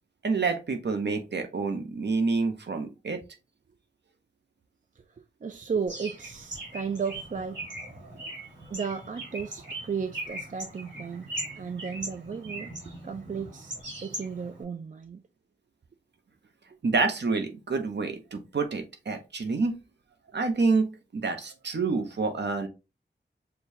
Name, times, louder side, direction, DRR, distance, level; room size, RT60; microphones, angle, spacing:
voice 1, 0.2-3.2 16.8-19.8 20.3-22.7, right 4 dB, 65° right, 0.8 m, -28 dB
voice 2, 5.4-7.6 8.7-11.3 11.6-12.7 13.0-15.2, right 6 dB, 45° right, 0.4 m, -34 dB
Bird, 5.9-14.6, right 1 dB, 85° right, 2.2 m, -40 dB
6.6 x 2.3 x 2.7 m
wide cardioid pair, 95°, 19 cm